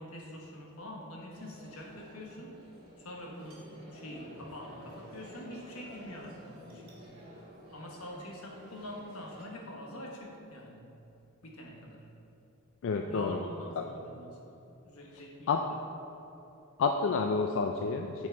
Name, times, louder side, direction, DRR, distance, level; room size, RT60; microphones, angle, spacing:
voice 1, 0.0-2.6 3.0-7.0 7.7-10.9 11.4-12.1 13.0-14.6 14.8-15.8, left 1 dB, 85° left, -1 dB, 1.2 m, -45 dB
sound 1, 1.3-9.4, equal, 30° right, 1.7 m, -51 dB
voice 2, 12.8-13.4 13.8-13.9 15.5-15.6 16.8-18.3, left 4 dB, 60° left, 4 dB, 0.3 m, -29 dB
8.3 x 4.7 x 4.5 m, 2.9 s
head